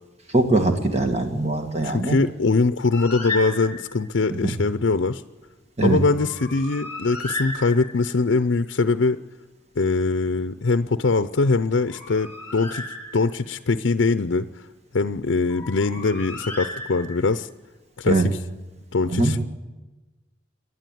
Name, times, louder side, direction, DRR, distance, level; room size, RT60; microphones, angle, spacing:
voice 1, 0.3-2.2 5.8-6.0 18.1-18.3 19.1-19.3, right 2 dB, 35° right, 6 dB, 2.1 m, -21 dB
voice 2, 1.8-5.2 5.8-9.2 9.8-12.8 13.1-14.5 14.9-17.5 18.0-18.4 18.9-19.4, left 3 dB, 75° left, 11 dB, 0.6 m, -22 dB
Bird, 2.9-4.1 6.2-8.2 11.7-13.5 15.5-17.4, left 1 dB, 10° left, 3.4 m, -34 dB
28.5 x 11.0 x 9.3 m, 1.2 s
head